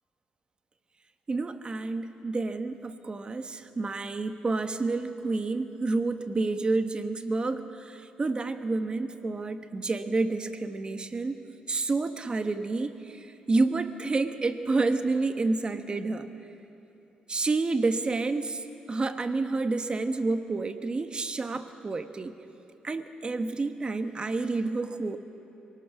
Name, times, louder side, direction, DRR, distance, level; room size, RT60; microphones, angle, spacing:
voice 1, 1.3-16.3 17.3-18.6 18.9-22.4 22.8-25.2, right 3 dB, 30° right, 9 dB, 1.2 m, -29 dB
23.5 x 19.5 x 6.1 m, 2.9 s
cardioid pair, 80°, 3 cm